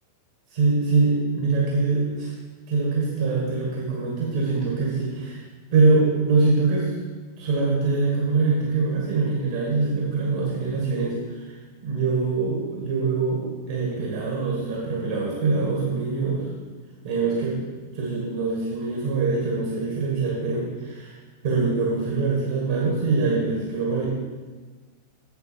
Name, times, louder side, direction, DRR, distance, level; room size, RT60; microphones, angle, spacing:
voice 1, 0.5-2.3 2.7-5.4 5.7-6.9 7.4-11.6 11.8-16.5 17.0-21.2 21.4-24.1, right 3 dB, 55° right, -3 dB, 1.9 m, -24 dB
8.0 x 7.5 x 4.5 m, 1.4 s
figure-of-eight pair, 90°, 0 cm